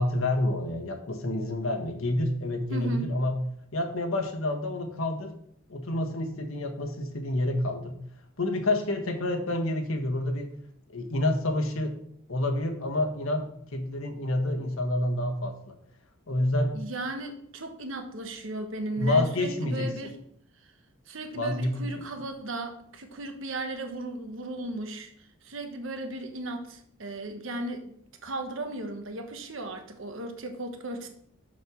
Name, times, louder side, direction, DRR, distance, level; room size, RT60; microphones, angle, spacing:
voice 1, 0.0-3.4 3.7-5.3 5.7-8.0 8.4-10.5 10.9-11.9 12.3-15.7 16.3-16.7 19.0-19.9 21.3-21.9, left 1 dB, 80° left, 4 dB, 1.4 m, -28 dB
voice 2, 2.7-3.1 16.7-20.1 21.1-25.1 25.4-31.1, right 2 dB, 65° right, 6 dB, 1.2 m, -36 dB
6.4 x 5.3 x 6.2 m, 0.69 s
head